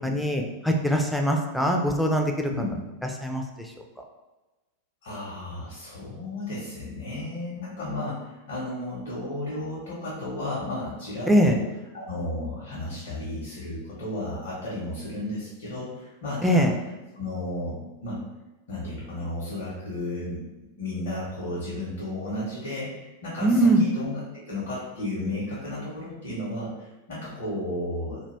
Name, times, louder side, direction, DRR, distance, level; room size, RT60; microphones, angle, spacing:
voice 1, 0.0-2.5 3.2-3.7 11.3-11.6 16.4-16.7 23.4-23.8, right 1 dB, ahead, 1 dB, 0.3 m, -22 dB
voice 2, 2.4-2.8 5.0-11.6 11.9-16.7 17.2-18.2 18.7-20.4 20.8-24.1 24.5-28.2, left 1 dB, 60° left, -7 dB, 0.8 m, -33 dB
2.3 x 2.2 x 3.2 m, 1.1 s
figure-of-eight pair, 90°, 0 cm